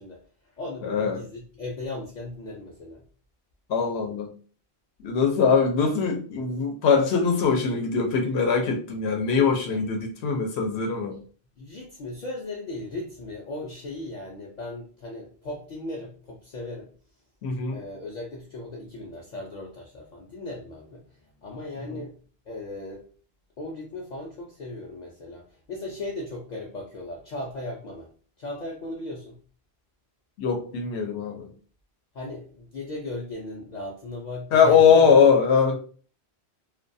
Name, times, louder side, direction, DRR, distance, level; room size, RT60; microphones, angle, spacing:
voice 1, 0.0-3.0 9.7-9.8 11.6-16.9 17.7-22.2 22.5-23.1 23.6-28.1 28.4-29.4 32.1-35.1, left 2 dB, 55° left, -2 dB, 0.5 m, -37 dB
voice 2, 0.8-1.2 3.7-4.3 5.0-11.2 17.4-17.8 21.9-22.0 30.4-31.5 34.5-35.8, left 6 dB, 85° left, 2 dB, 0.8 m, -21 dB
2.3 x 2.3 x 2.5 m, 0.42 s
omnidirectional pair, 1.1 m